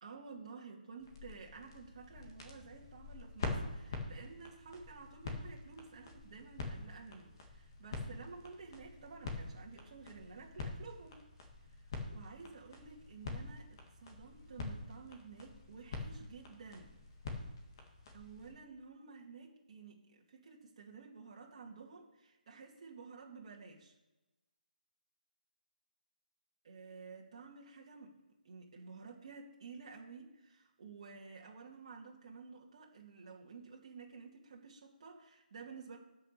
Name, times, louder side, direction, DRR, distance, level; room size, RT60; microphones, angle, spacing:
voice 1, 0.0-11.2 11.8-13.7 14.0-16.9 18.1-24.0 26.6-28.2 28.4-36.0, right 4 dB, 40° right, -1 dB, 2.1 m, -52 dB
sound 1, 1.0-18.5, left 3 dB, 30° left, 1.9 m, -46 dB
9.3 x 6.0 x 6.7 m, 1.1 s
hypercardioid pair, 170°, 5 cm